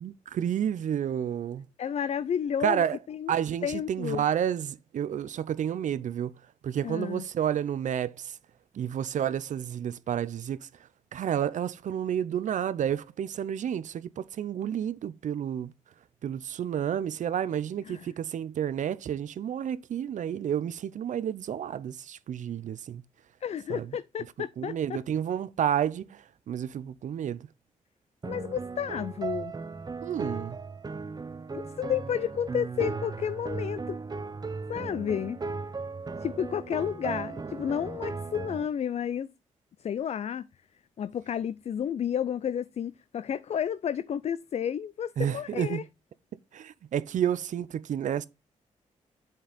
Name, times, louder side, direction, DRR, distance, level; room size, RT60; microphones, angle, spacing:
voice 1, 0.0-1.7 2.6-3.0 3.3-6.3 6.6-8.4 8.7-10.7 11.1-15.7 16.2-23.0 23.7-23.9 24.6-27.5 30.0-30.6 45.2-45.8 46.5-48.3, right 9 dB, 70° right, 0.5 m, -30 dB
voice 2, 1.8-3.3 3.6-4.2 6.8-7.3 17.9-18.1 23.4-25.0 28.2-29.5 31.5-34.0 34.7-35.4 36.2-39.3 39.8-40.5 41.0-45.8, left 8 dB, 55° left, 0.4 m, -31 dB
sound 1, 28.2-38.7, right 4 dB, 30° right, 0.7 m, -36 dB
7.7 x 5.3 x 4.1 m
cardioid pair, 65°, 13 cm